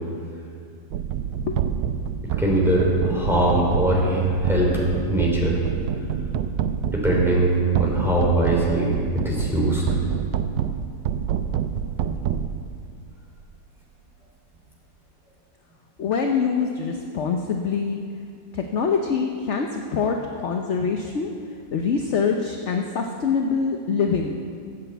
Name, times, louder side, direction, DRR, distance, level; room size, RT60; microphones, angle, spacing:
sound 1, 0.9-13.0, right 8 dB, 80° right, 1.3 m, -27 dB
voice 1, 2.4-4.7 5.1-5.6 6.9-9.8, right 1 dB, ahead, -4 dB, 3.3 m, -21 dB
voice 2, 16.0-18.0 18.5-20.2 20.4-21.3 21.7-24.4, left 5 dB, 55° left, 3 dB, 0.9 m, -24 dB
14.5 x 8.2 x 8.0 m, 2.3 s
omnidirectional pair, 2.0 m